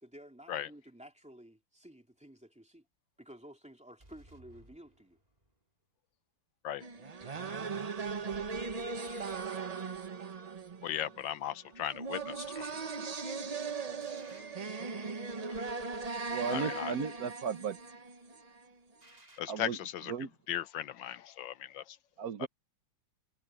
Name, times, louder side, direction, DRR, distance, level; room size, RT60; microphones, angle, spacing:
voice 1, 0.0-2.9 3.2-5.2, equal, 5° right, 2.7 m, -53 dB
sound 1, 4.0-5.6 9.0-10.2 14.0-15.1 19.0-19.9, right 1 dB, 20° right, 3.4 m, -60 dB
sound 2, 6.8-18.7, right 4 dB, 80° right, 0.3 m, -39 dB
voice 2, 10.8-12.8 15.5-15.6 16.5-16.9 19.4-20.1 20.5-22.0 22.4-22.5, left 11 dB, 75° left, 1.4 m, -37 dB
voice 3, 16.3-17.8 19.5-19.8 20.1-20.3 22.2-22.5, right 6 dB, 55° right, 1.4 m, -35 dB
omnidirectional pair, 2.1 m